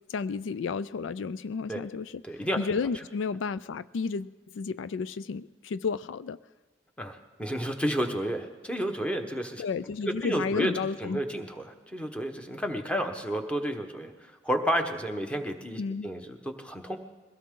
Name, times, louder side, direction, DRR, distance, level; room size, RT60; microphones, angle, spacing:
voice 1, 0.1-2.1 2.6-6.4 9.6-11.2 15.8-16.1, left 5 dB, 85° left, 16 dB, 0.4 m, -32 dB
voice 2, 2.2-2.6 7.0-9.6 10.0-10.7 11.0-17.0, equal, 5° left, 5 dB, 1.2 m, -31 dB
22.5 x 16.5 x 3.8 m, 1.3 s
head